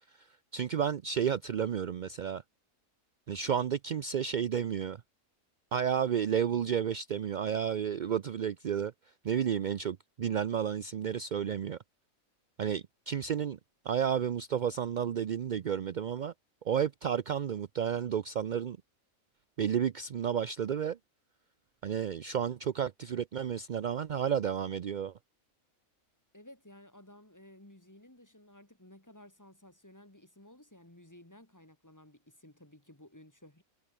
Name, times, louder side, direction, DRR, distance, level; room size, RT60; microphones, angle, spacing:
voice 1, 0.1-2.4 3.3-5.0 5.7-8.9 9.2-11.8 12.6-13.6 13.8-16.3 16.6-18.8 19.6-21.0 21.8-25.1, right 8 dB, 60° right, 0.5 m, -31 dB
voice 2, 26.3-33.6, left 1 dB, 10° left, 2.4 m, -55 dB
omnidirectional pair, 1.5 m